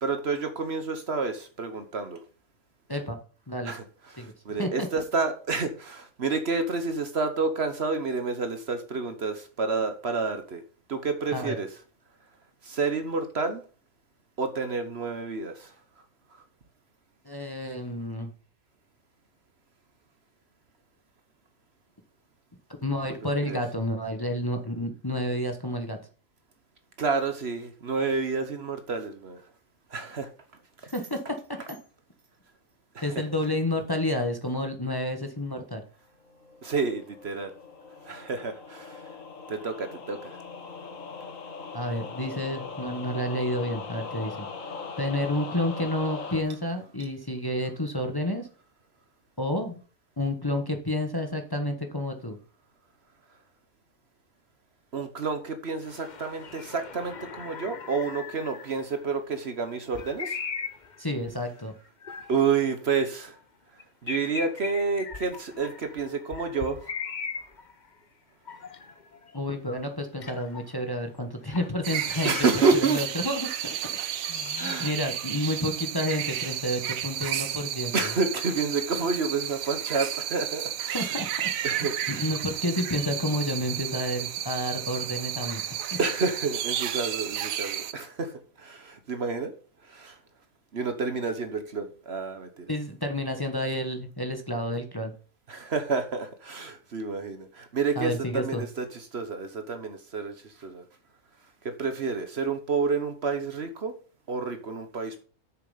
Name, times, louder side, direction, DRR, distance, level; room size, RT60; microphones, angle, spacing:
voice 1, 0.0-2.2 3.6-10.6 10.9-11.7 12.6-13.6 14.4-15.7 23.4-23.6 27.0-29.4 29.9-30.3 30.8-30.9 32.9-33.0 36.6-37.5 38.0-39.1 39.5-40.4 54.9-60.4 62.3-63.4 64.0-66.9 72.2-73.1 74.6-74.9 77.9-81.1 81.6-82.3 86.0-89.5 89.8-90.2 90.7-92.7 95.5-100.8 101.6-103.9 104.3-105.2, right 4 dB, 50° right, 8 dB, 1.3 m, -29 dB
voice 2, 17.2-18.3 22.8-26.0 30.8-31.2 31.7-31.8 33.0-35.8 41.7-44.5 45.0-48.5 49.4-49.8 50.2-52.4 61.0-61.7 69.3-72.4 72.7-73.8 74.3-78.1 80.9-85.6 85.9-86.0 92.7-95.1 98.0-98.6, left 1 dB, 15° left, 4 dB, 1.2 m, -30 dB
sound 1, 36.2-46.4, left 5 dB, 75° left, 1.7 m, -40 dB
sound 2, 55.8-59.2 59.7-61.1 61.6-62.5 62.8-62.9 63.4-63.5 63.8-67.9 68.5-69.4 69.7-69.9 70.2-71.1 71.5-71.7 72.0-74.0 74.3-74.9, left 5 dB, 40° left, 0.9 m, -40 dB
sound 3, 71.8-87.9, right 11 dB, 80° right, 1.1 m, -32 dB
7.6 x 6.8 x 5.6 m, 0.39 s
omnidirectional pair, 1.4 m